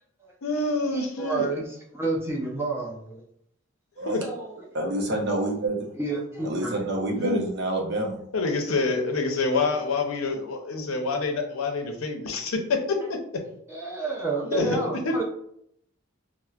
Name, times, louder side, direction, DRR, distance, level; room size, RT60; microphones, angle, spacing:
voice 1, 0.4-1.5 4.0-4.2 7.1-7.5 8.3-12.8 14.5-15.1, left 3 dB, 85° left, 3 dB, 0.6 m, -26 dB
voice 2, 0.9-3.2 4.2-4.7 6.0-6.8 13.7-15.2, right 3 dB, 10° right, -3 dB, 0.6 m, -30 dB
voice 3, 4.7-5.8 6.4-8.2, right 1 dB, 55° right, 1 dB, 0.7 m, -27 dB
4.3 x 2.1 x 2.3 m, 0.71 s
head